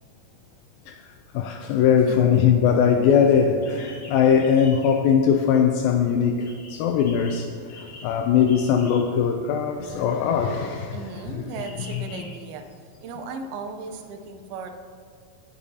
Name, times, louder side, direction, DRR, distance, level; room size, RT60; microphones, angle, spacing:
voice 1, 0.9-11.0 11.3-11.4 11.8-12.3, left 7 dB, 80° left, 2.1 m, -21 dB
sound 1, 3.6-5.1 6.4-9.3 11.5-13.0, left 2 dB, 55° left, 1.2 m, -46 dB
voice 2, 10.9-12.6 13.0-14.7, right 4 dB, 80° right, 2.5 m, -36 dB
19.5 x 8.6 x 2.8 m
omnidirectional pair, 4.5 m